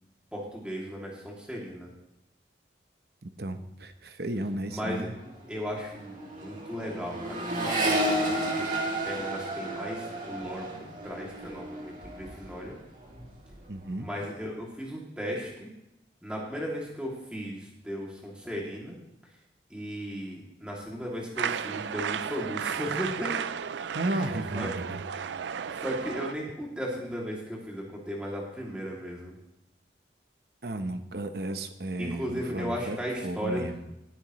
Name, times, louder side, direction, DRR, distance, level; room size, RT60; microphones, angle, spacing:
voice 1, 0.3-1.9 4.7-5.1 5.5-12.8 14.0-15.7 16.2-19.0 19.7-23.4 24.0-24.3 24.6-24.7 25.7-29.3 32.0-33.6, equal, 5° right, -4 dB, 2.7 m, -36 dB
voice 2, 3.2-5.1 13.7-14.1 23.9-25.0 30.6-33.0 33.2-33.8, right 1 dB, 65° right, 8 dB, 0.9 m, -33 dB
Accelerating revving vroom, 4.7-4.9 5.1-12.7 13.0-13.6, right 1 dB, 45° right, 2.6 m, -32 dB
sound 1, 21.4-26.3, right 7 dB, 85° right, 0.4 m, -34 dB
18.5 x 8.9 x 3.2 m, 0.87 s
head